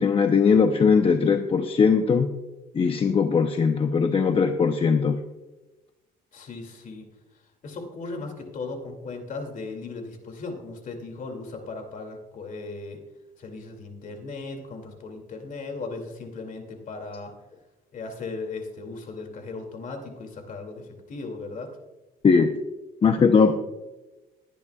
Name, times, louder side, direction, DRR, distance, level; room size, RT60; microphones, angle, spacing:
voice 1, 0.0-2.3 2.7-5.2 22.2-22.5 23.0-23.5, left 5 dB, 35° left, 6 dB, 0.8 m, -20 dB
voice 2, 6.3-7.1 7.6-13.0 13.4-17.3 17.9-21.7, left 3 dB, 50° left, 5 dB, 2.6 m, -37 dB
20.5 x 10.5 x 2.4 m, 1.1 s
cardioid pair, 110°, 17 cm